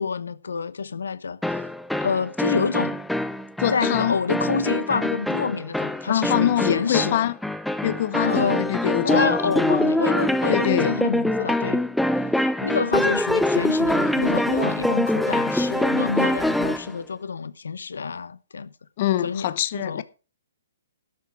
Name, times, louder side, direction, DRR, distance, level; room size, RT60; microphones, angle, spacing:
voice 1, 0.0-1.6 2.0-3.0 3.7-7.3 8.2-11.8 12.4-18.7 19.2-20.0, left 5 dB, 90° left, 1.0 m, -27 dB
sound 1, 1.4-16.9, left 1 dB, ahead, 0.6 m, -24 dB
voice 2, 3.6-4.2 6.1-7.4 7.8-9.3 10.5-10.9 19.0-20.0, left 12 dB, 45° left, 1.0 m, -24 dB
12.5 x 7.0 x 6.3 m
hypercardioid pair, 155°, 0 cm